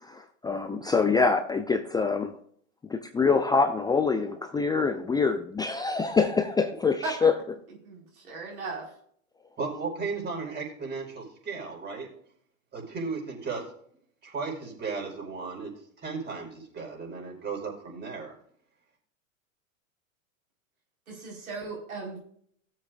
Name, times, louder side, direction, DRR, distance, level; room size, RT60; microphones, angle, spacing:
voice 1, 0.0-2.3 2.9-7.3, left 4 dB, 10° left, 6 dB, 0.5 m, -25 dB
voice 2, 7.8-8.9 21.1-22.2, right 3 dB, 90° right, -3 dB, 4.7 m, -37 dB
voice 3, 9.6-12.1 12.7-13.6 14.2-15.7 16.0-18.4, right 4 dB, 25° right, -1 dB, 5.1 m, -35 dB
18.0 x 7.6 x 2.5 m, 0.63 s
hypercardioid pair, 105°, 41 cm